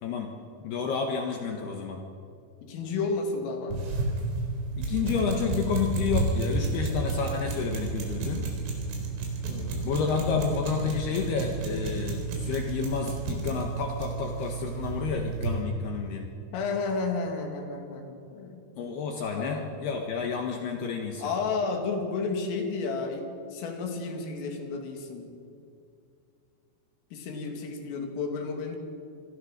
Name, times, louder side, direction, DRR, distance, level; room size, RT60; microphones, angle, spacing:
voice 1, 0.0-0.3 0.6-2.0 4.8-8.5 9.8-16.2 18.8-21.2, left 6 dB, 65° left, 2 dB, 3.0 m, -30 dB
voice 2, 2.6-3.8 9.4-9.9 16.5-18.7 19.4-19.7 21.2-25.3 27.1-28.8, left 4 dB, 85° left, 3 dB, 5.2 m, -32 dB
sound 1, 3.7-15.6, right 3 dB, 90° right, 6.9 m, -31 dB
27.5 x 22.5 x 6.7 m, 2.4 s
omnidirectional pair, 5.7 m